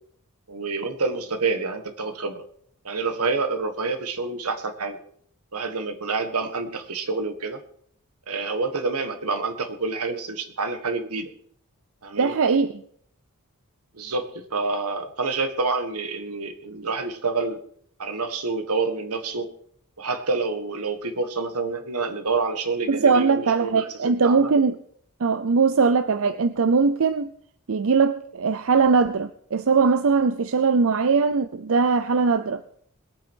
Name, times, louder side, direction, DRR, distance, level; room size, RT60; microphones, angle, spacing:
voice 1, 0.5-2.4 2.8-5.0 5.5-7.6 8.3-11.3 12.0-12.4 13.9-17.6 18.0-19.5 20.0-24.5, right 4 dB, 90° right, 1.6 m, -28 dB
voice 2, 12.2-12.7 22.9-24.8 25.2-27.3 27.7-32.6, right 5 dB, 65° right, 0.6 m, -20 dB
21.0 x 8.8 x 4.6 m
head